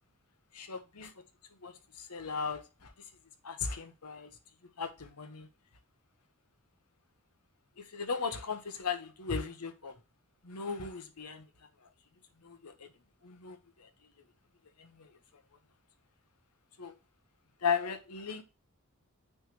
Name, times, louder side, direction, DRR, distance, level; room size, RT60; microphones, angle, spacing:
voice 1, 0.5-1.1 1.6-3.1 3.4-4.3 4.8-5.5 7.8-9.9 10.4-11.5 11.8-11.9 12.4-12.9 13.2-13.9 14.8-15.2 16.8-16.9 17.6-18.4, left 5 dB, 85° left, 1.0 m, -37 dB
9.2 x 3.4 x 3.0 m
head